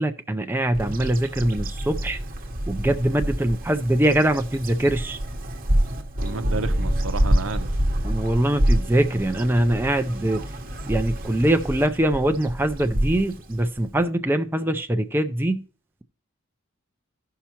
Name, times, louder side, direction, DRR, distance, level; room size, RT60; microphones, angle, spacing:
voice 1, 0.0-2.2 2.7-5.2 8.0-10.4 10.9-15.6, right 1 dB, 10° right, 0.5 m, -23 dB
Bird vocalization bird call bird song, 0.7-14.0, right 1 dB, 45° right, 1.0 m, -27 dB
voice 2, 6.2-7.7, right 3 dB, 75° right, 0.8 m, -31 dB
15.5 x 5.7 x 2.9 m
head